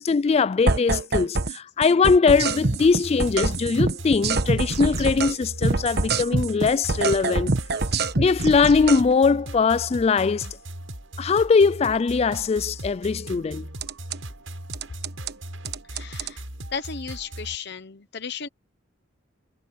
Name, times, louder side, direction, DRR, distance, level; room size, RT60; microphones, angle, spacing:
voice 1, 0.0-7.5 8.2-10.6 11.2-13.7, left 5 dB, 30° left, 0.3 m, -21 dB
sound 1, 0.7-1.6 1.8-5.4 5.6-9.0 13.8-14.2 14.7-15.3 15.7-16.3, right 3 dB, 55° right, 1.2 m, -25 dB
sound 2, 2.3-17.6, right 1 dB, 85° right, 7.8 m, -38 dB
voice 2, 15.9-16.4 16.7-18.5, left 6 dB, 60° left, 1.0 m, -34 dB
head